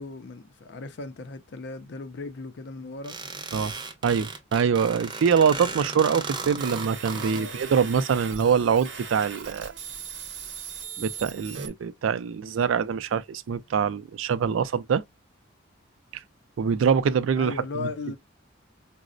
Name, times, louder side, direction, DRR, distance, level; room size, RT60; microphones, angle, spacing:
voice 1, 0.0-3.2 5.6-5.8 7.2-7.8 17.4-18.2, left 3 dB, 60° left, 0.4 m, -37 dB
sound 1, 3.0-7.4, right 3 dB, 25° right, 0.6 m, -36 dB
voice 2, 4.0-9.7 11.0-15.0 16.6-17.9, right 6 dB, 80° right, 0.3 m, -24 dB
sound 2, 6.6-11.7, right 6 dB, 65° right, 0.7 m, -39 dB
4.0 x 2.0 x 2.4 m
head